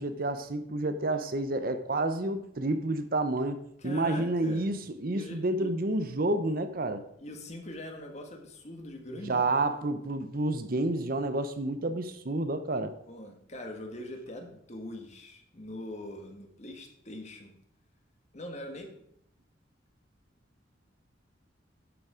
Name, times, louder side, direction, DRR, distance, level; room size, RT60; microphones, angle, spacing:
voice 1, 0.0-7.0 9.3-12.9, right 2 dB, 50° right, 10 dB, 0.7 m, -29 dB
voice 2, 3.8-4.7 5.1-5.7 7.2-9.5 13.1-17.6 18.3-18.9, left 1 dB, 35° left, 3 dB, 1.7 m, -42 dB
11.0 x 7.1 x 5.0 m, 0.74 s
head